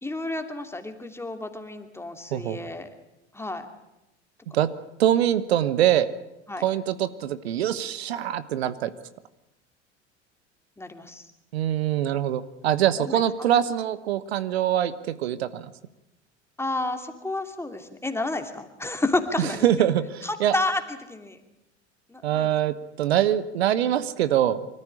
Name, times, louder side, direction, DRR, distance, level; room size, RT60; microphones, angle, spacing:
voice 1, 0.0-2.9 3.3-3.7 6.5-6.6 10.8-11.2 13.0-13.2 16.6-19.7 20.2-21.4 22.1-22.5, left 2 dB, 5° left, 6 dB, 2.8 m, -30 dB
voice 2, 5.0-6.1 6.6-8.9 11.5-14.9 15.2-15.7 19.4-20.5 22.2-24.6, right 11 dB, 65° right, 14 dB, 1.2 m, -23 dB
25.5 x 14.5 x 10.0 m, 0.92 s
figure-of-eight pair, 70°, 34 cm